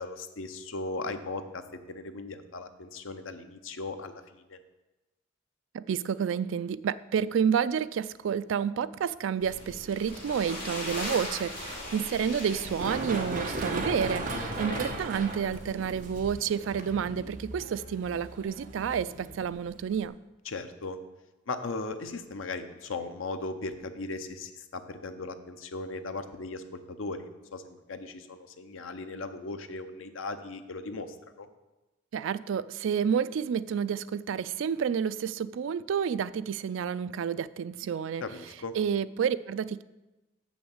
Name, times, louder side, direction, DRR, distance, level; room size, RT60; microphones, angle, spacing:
voice 1, 0.0-1.6 1.9-4.6 14.3-14.8 20.4-21.0 21.5-31.5 38.2-38.8, left 3 dB, 80° left, 8 dB, 0.7 m, -38 dB
voice 2, 5.7-20.1 32.1-38.2 38.7-39.8, right 7 dB, 70° right, 16 dB, 0.3 m, -30 dB
sound 1, 9.4-16.2, left 1 dB, 50° left, 3.5 m, -40 dB
Run, 12.5-20.1, right 2 dB, 40° right, 1.2 m, -37 dB
7.0 x 6.2 x 7.2 m, 1.0 s
head